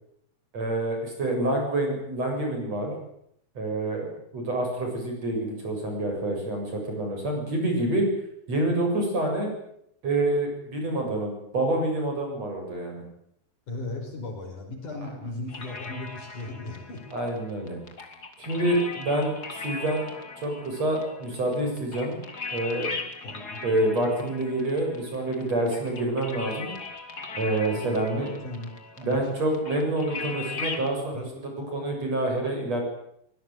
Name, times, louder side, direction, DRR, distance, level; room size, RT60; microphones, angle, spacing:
voice 1, 0.5-2.9 3.5-4.1 4.3-8.1 8.5-9.5 10.0-13.0 17.1-17.8 18.4-19.3 19.6-20.0 20.4-22.2 22.5-22.9 23.6-26.7 27.3-28.3 29.0-32.8, right 1 dB, 35° right, 2 dB, 8.0 m, -27 dB
voice 2, 13.7-17.0 23.2-23.7 27.7-29.2 31.1-31.7, left 2 dB, 40° left, 2 dB, 6.7 m, -37 dB
sound 1, 15.5-30.9, left 4 dB, 25° left, 2.5 m, -39 dB
24.5 x 21.0 x 9.4 m, 0.74 s
omnidirectional pair, 5.5 m